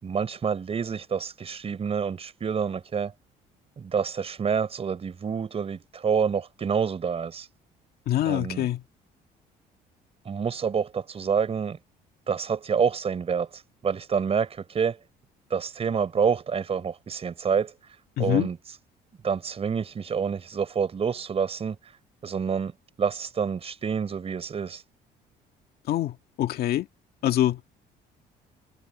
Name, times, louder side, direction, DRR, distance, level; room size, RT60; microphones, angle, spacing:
voice 1, 0.0-3.1 3.8-7.5 8.2-8.7 10.2-11.8 12.3-15.0 15.5-18.8 19.2-24.8, right 6 dB, 35° right, 4.7 m, -28 dB
voice 2, 8.1-8.8 18.2-18.5 25.9-26.9 27.2-27.6, left 12 dB, 65° left, 1.8 m, -25 dB
cardioid pair, 110°, 17 cm